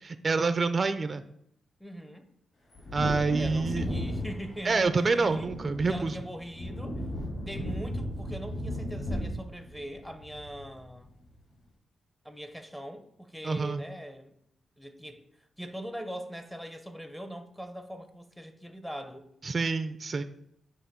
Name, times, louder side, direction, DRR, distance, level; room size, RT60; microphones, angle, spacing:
voice 1, 0.0-1.2 2.9-3.8 4.6-6.1 13.4-13.8 19.5-20.2, right 4 dB, 35° right, 0.4 m, -27 dB
voice 2, 1.8-2.3 3.4-5.5 5.9-7.0 7.4-11.1 12.2-14.3 14.8-19.3, equal, 5° left, 0.6 m, -41 dB
Wind / Thunder, 2.7-11.0 11.3-11.4, equal, 50° left, 2.6 m, -36 dB
8.1 x 3.0 x 5.9 m
cardioid pair, 105°, 0 cm